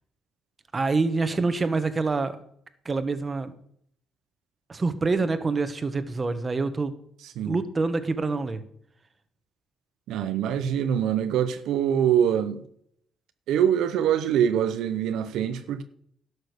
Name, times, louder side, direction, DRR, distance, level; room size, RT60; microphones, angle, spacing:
voice 1, 0.7-2.4 2.8-3.5 4.7-6.9 7.5-8.6, right 3 dB, 30° right, 1.4 m, -26 dB
voice 2, 7.2-7.6 10.1-12.6 13.5-15.8, right 9 dB, 85° right, 0.8 m, -24 dB
12.0 x 6.4 x 6.6 m
cardioid pair, 90°, 0 cm